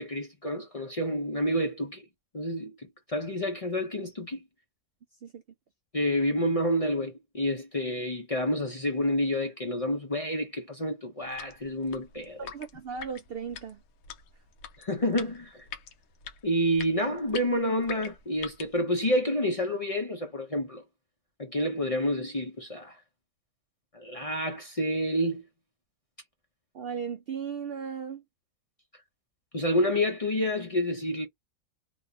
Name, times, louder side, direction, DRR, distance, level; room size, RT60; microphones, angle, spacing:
voice 1, 0.0-2.0 2.3-4.4 5.9-12.4 14.8-15.7 16.4-20.8 21.4-23.0 23.9-25.4 29.5-31.3, equal, 35° left, 0.6 m, -29 dB
sound 1, 11.2-18.8, left 7 dB, 80° left, 1.1 m, -45 dB
voice 2, 12.4-13.8 26.7-28.2, right 6 dB, 75° right, 0.5 m, -36 dB
3.4 x 2.4 x 2.7 m
omnidirectional pair, 1.5 m